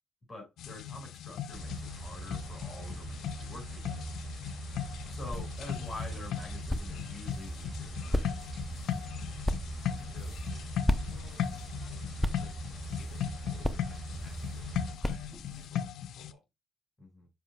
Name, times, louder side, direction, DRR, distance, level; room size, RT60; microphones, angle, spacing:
voice 1, 0.3-4.2 5.1-8.6 17.0-17.3, left 2 dB, 25° left, 5.0 m, -47 dB
sound 1, 0.6-16.3, left 9 dB, 75° left, 0.5 m, -38 dB
sound 2, 1.5-15.0, right 3 dB, 35° right, 3.5 m, -42 dB
sound 3, 4.7-15.7, left 1 dB, 5° left, 0.7 m, -37 dB
voice 2, 9.7-16.4, left 4 dB, 55° left, 3.8 m, -59 dB
7.6 x 6.9 x 2.2 m
cardioid pair, 90°, 0 cm